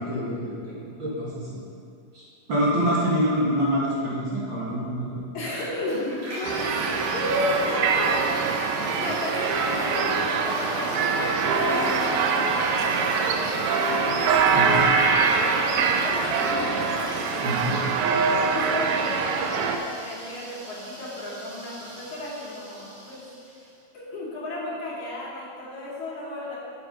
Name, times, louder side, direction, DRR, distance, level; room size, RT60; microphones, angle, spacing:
voice 1, 0.0-1.6 2.1-5.2 14.5-14.8 17.4-17.8, equal, 45° right, -7 dB, 2.3 m, -26 dB
voice 2, 2.8-3.1 5.3-6.7 7.1-8.1 9.0-14.0 15.0-16.9 18.5-23.7 23.9-26.6, left 1 dB, 75° left, -6 dB, 3.7 m, -34 dB
Toilet flush, 5.7-23.6, equal, 70° right, 4.1 m, -37 dB
sound 1, 6.4-19.8, right 5 dB, 85° right, 2.1 m, -24 dB
9.8 x 7.0 x 5.2 m, 2.4 s
omnidirectional pair, 3.4 m